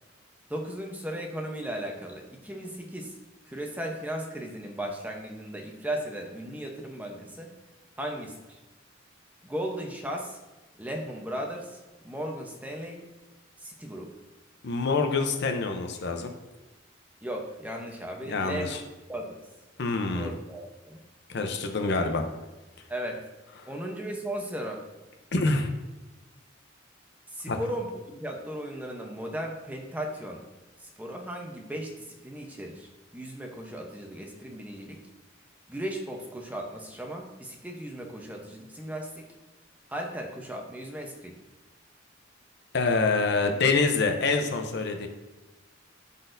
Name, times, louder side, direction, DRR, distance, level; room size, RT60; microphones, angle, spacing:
voice 1, 0.5-3.1 3.4-7.5 8.0-8.4 9.4-10.4 10.8-11.8 12.0-13.0 13.6-14.1 17.2-18.8 19.1-19.4 20.1-21.0 22.9-23.2 23.7-24.8 27.3-30.4 31.0-35.0 35.7-39.3 39.9-41.4, right 1 dB, 10° right, 1 dB, 0.8 m, -36 dB
voice 2, 14.6-16.3 18.2-18.8 19.8-20.3 21.3-22.3 25.3-25.7 27.5-27.6 42.7-45.1, left 3 dB, 60° left, 5 dB, 0.7 m, -26 dB
12.0 x 4.1 x 2.6 m, 1.1 s
head